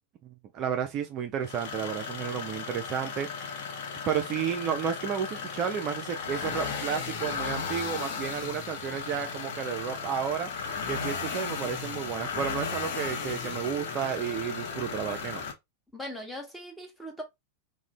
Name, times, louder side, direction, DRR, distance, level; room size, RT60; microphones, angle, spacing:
voice 1, 0.5-3.6 4.1-10.5 10.9-15.4, right 8 dB, 35° right, 0.4 m, -32 dB
sound 1, 1.4-15.5, left 5 dB, 50° left, 0.6 m, -35 dB
voice 2, 15.9-17.2, equal, 5° left, 0.8 m, -39 dB
2.4 x 2.1 x 3.0 m
figure-of-eight pair, 90°, 0 cm